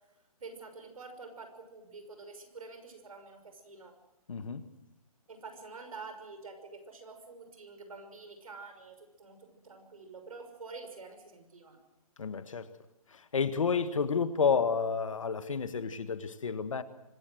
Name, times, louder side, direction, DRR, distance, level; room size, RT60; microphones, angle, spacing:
voice 1, 0.4-4.0 5.3-11.8, right 4 dB, 65° right, 6.0 m, -47 dB
voice 2, 4.3-4.6 12.2-12.7 13.1-16.8, left 5 dB, 60° left, 1.5 m, -30 dB
25.5 x 16.5 x 7.8 m
hypercardioid pair, 180°, 19 cm